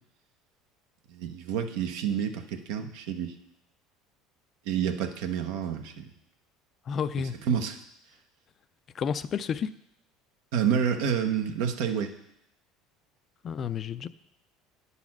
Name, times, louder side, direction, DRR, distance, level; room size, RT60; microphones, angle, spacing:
voice 1, 1.1-3.3 4.7-6.0 7.5-7.8 10.5-12.2, right 8 dB, 75° right, 6 dB, 0.8 m, -28 dB
voice 2, 6.9-7.4 8.9-9.7 13.4-14.1, left 7 dB, 40° left, 14 dB, 0.4 m, -30 dB
9.6 x 4.1 x 5.9 m, 0.78 s
supercardioid pair, 90°, 0 cm